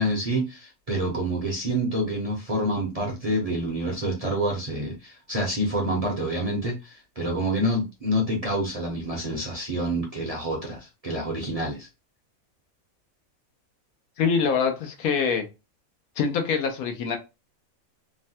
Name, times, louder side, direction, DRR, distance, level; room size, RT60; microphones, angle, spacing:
voice 1, 0.0-11.9, right 1 dB, 40° right, 0.5 m, -27 dB
voice 2, 14.2-15.5 16.2-17.2, left 6 dB, 85° left, 1.1 m, -24 dB
3.1 x 2.1 x 2.6 m
omnidirectional pair, 1.5 m